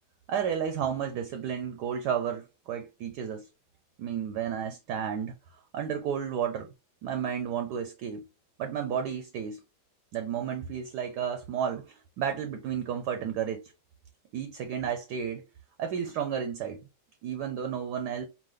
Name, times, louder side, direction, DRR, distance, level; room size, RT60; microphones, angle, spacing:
voice 1, 0.3-3.5 4.0-5.3 5.7-6.7 7.0-8.2 8.6-9.6 10.1-13.7 14.3-15.4 15.8-16.8 17.2-18.3, right 8 dB, 70° right, 1.0 m, -32 dB
4.9 x 2.2 x 3.6 m
omnidirectional pair, 2.1 m